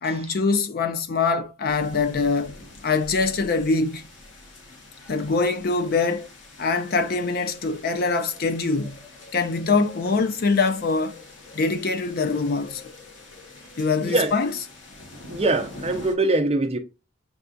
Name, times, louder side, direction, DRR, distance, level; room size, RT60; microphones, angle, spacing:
voice 1, 0.0-2.5 2.8-4.0 5.1-6.3 6.6-9.0 9.3-11.2 11.5-12.8 13.8-14.5, left 4 dB, 50° left, 0.5 m, -23 dB
sound 1, 1.7-16.1, left 2 dB, 70° left, 1.0 m, -45 dB
voice 2, 14.0-14.3 15.3-16.8, right 2 dB, 30° right, 0.6 m, -23 dB
6.7 x 2.3 x 2.6 m
head